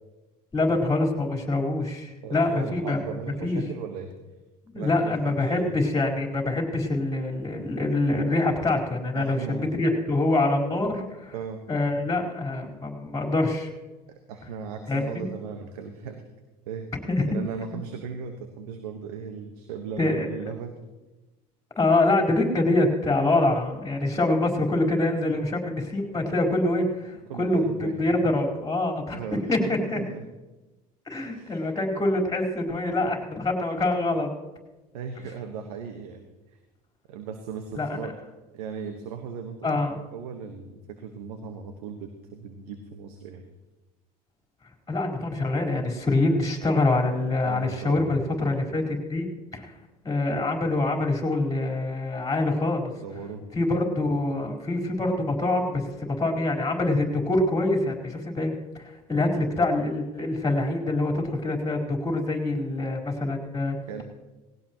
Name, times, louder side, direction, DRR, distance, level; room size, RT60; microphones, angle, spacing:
voice 1, 0.5-3.0 3.4-3.6 4.7-11.3 11.7-13.7 14.9-15.3 17.1-17.3 17.7-17.8 20.0-20.3 21.8-29.2 29.5-30.0 31.1-34.3 37.7-38.0 39.6-39.9 44.9-49.3 49.5-49.7 50.0-52.9 53.5-63.8, left 2 dB, 20° left, 2 dB, 4.3 m, -25 dB
voice 2, 2.2-4.1 4.7-5.7 9.1-9.7 11.3-11.6 14.1-16.2 16.7-16.9 17.3-20.8 27.3-28.0 29.1-30.3 31.2-31.6 34.9-36.2 37.1-38.2 38.5-39.8 40.1-43.4 47.4-48.2 53.0-53.4 63.9-64.0, right 6 dB, 80° right, 6 dB, 1.4 m, -37 dB
19.5 x 17.0 x 3.1 m, 1.1 s
hypercardioid pair, 75°, 20 cm